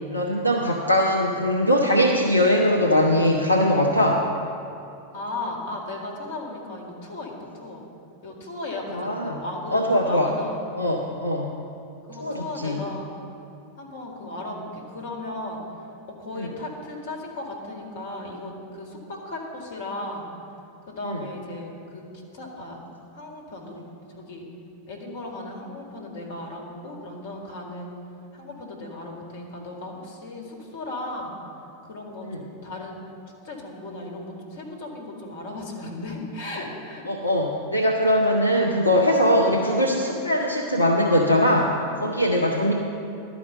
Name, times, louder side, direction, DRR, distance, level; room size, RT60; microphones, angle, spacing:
voice 1, 0.1-4.2 8.9-9.4 9.7-10.3 10.8-11.6 12.2-12.8 16.3-16.5 21.0-21.2 32.3-32.4 37.1-42.7, equal, 85° left, 0 dB, 0.7 m, -21 dB
voice 2, 5.1-7.8 8.2-10.6 12.1-13.1 13.8-15.6 16.1-20.3 20.9-22.0 22.3-22.8 23.1-23.8 24.1-24.5 24.9-28.0 28.3-31.3 31.8-33.0 33.4-37.1, left 2 dB, 55° left, 0 dB, 2.1 m, -36 dB
12.0 x 5.0 x 8.1 m, 2.7 s
figure-of-eight pair, 90°, 0 cm